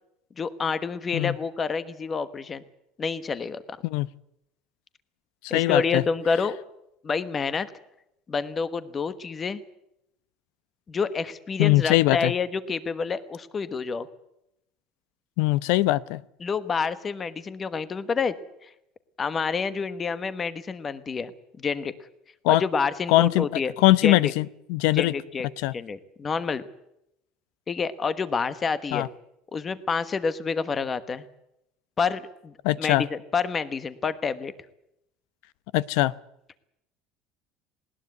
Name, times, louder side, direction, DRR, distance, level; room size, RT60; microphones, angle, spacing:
voice 1, 0.4-2.6 3.0-3.8 5.5-6.6 7.0-7.7 8.3-9.6 10.9-14.1 16.4-18.3 18.6-18.7 19.2-21.3 21.6-21.9 22.5-23.7 24.0-24.3 24.9-25.5 25.7-26.6 27.7-29.1 29.5-31.2 32.0-34.5, left 5 dB, 20° left, 13 dB, 1.2 m, -28 dB
voice 2, 5.4-6.0 11.6-12.3 15.4-16.2 22.4-22.6 23.1-23.5 23.8-25.1 25.6-25.7 28.9-29.1 32.6-33.1 35.7-36.1, left 18 dB, 75° left, 18 dB, 0.8 m, -21 dB
20.0 x 19.5 x 8.4 m, 0.81 s
cardioid pair, 165°, 0 cm